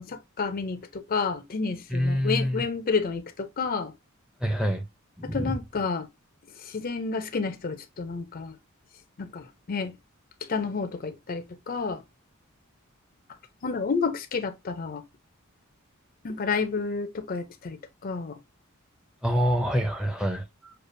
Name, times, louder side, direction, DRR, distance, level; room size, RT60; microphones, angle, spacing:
voice 1, 0.0-3.9 5.2-6.1 6.6-8.5 9.2-9.9 10.5-12.0 13.6-15.0 16.2-17.8 18.0-18.4, left 4 dB, 45° left, 0.5 m, -30 dB
voice 2, 1.9-2.6 4.4-4.8 5.2-5.6 19.2-20.7, equal, 5° right, 0.6 m, -26 dB
6.5 x 2.4 x 2.6 m
head